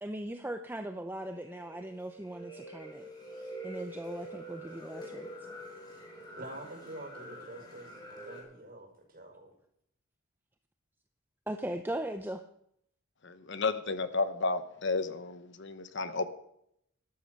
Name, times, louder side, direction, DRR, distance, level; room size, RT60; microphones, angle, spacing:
voice 1, 0.0-3.1 3.6-5.3 11.5-12.4, right 1 dB, 10° right, 7 dB, 0.5 m, -38 dB
sound 1, 1.2-8.4, right 1 dB, 20° left, 4.1 m, -46 dB
voice 2, 6.1-9.5, right 1 dB, 45° right, 1 dB, 5.6 m, -47 dB
voice 3, 13.2-16.3, left 3 dB, 55° left, 11 dB, 1.1 m, -32 dB
13.0 x 11.5 x 6.6 m, 0.72 s
head